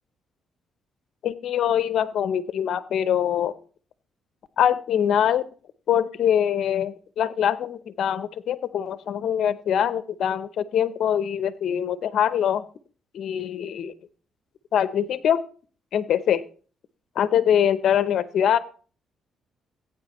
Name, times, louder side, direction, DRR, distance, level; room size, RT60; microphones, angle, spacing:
voice 1, 1.2-3.5 4.6-5.5 5.9-12.6 13.1-13.9 14.7-15.4 15.9-16.4 17.2-18.6, left 9 dB, 70° left, 15 dB, 0.7 m, -23 dB
16.0 x 9.1 x 3.0 m, 0.40 s
cardioid pair, 90°, 0 cm